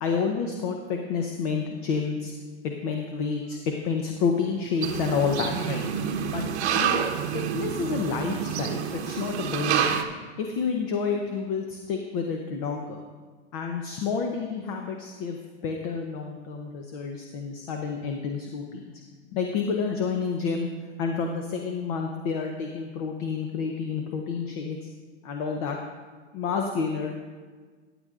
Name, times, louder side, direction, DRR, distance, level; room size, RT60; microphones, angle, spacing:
voice 1, 0.0-2.3 2.6-5.8 6.3-6.5 6.7-7.1 7.3-9.9 10.4-13.0 13.5-15.4 15.6-18.8 19.3-20.7 21.0-24.8 25.2-25.8 26.3-27.1, left 5 dB, 35° left, 3 dB, 0.8 m, -29 dB
sound 1, 4.8-10.0, right 8 dB, 70° right, 1.0 m, -28 dB
15.5 x 9.6 x 2.5 m, 1.5 s
hypercardioid pair, 145°, 35 cm